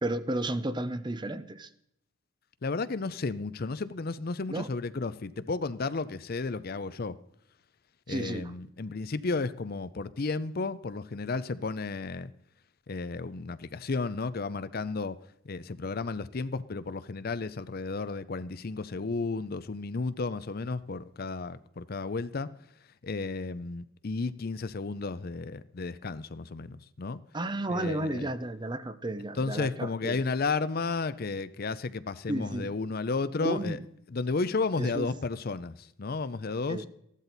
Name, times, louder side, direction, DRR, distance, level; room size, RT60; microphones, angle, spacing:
voice 1, 0.0-1.7 4.5-4.7 8.1-8.5 27.3-30.2 32.3-32.7 33.4-33.8 34.8-35.1 36.7-36.9, right 1 dB, 20° right, 0.6 m, -32 dB
voice 2, 2.6-7.1 8.1-12.3 12.9-15.2 15.4-22.5 23.0-27.2 27.7-28.3 29.3-33.8 34.1-36.9, left 3 dB, 45° left, 0.5 m, -33 dB
15.0 x 12.0 x 4.1 m
head